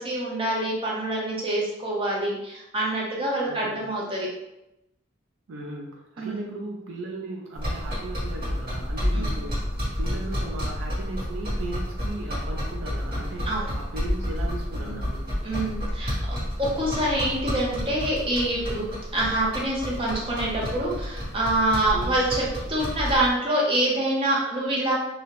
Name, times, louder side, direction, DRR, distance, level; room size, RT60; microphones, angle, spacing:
voice 1, 0.0-4.3 6.2-6.5 9.1-9.4 13.4-13.7 14.8-15.0 15.4-16.2 16.6-24.9, right 1 dB, 25° right, -4 dB, 0.6 m, -26 dB
voice 2, 3.4-3.8 5.5-13.5 13.8-15.3 21.9-22.2, right 2 dB, 65° right, 0 dB, 0.4 m, -37 dB
sound 1, 7.6-23.3, equal, 45° right, 1.3 m, -30 dB
2.7 x 2.0 x 2.9 m, 0.89 s
head